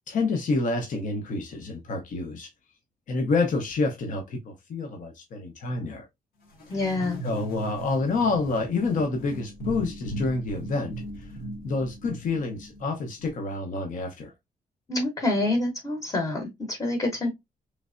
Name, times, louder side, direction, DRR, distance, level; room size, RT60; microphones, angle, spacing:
voice 1, 0.1-2.5 3.1-6.1 6.7-6.9 7.2-11.4 11.6-14.3, left 3 dB, 60° left, 0.7 m, -28 dB
sound 1, 6.5-13.3, right 2 dB, 85° left, 1.2 m, -38 dB
voice 2, 6.7-7.2 14.9-17.3, left 2 dB, 25° left, 0.9 m, -27 dB
3.3 x 3.2 x 2.4 m
wide cardioid pair, 140°, 15 cm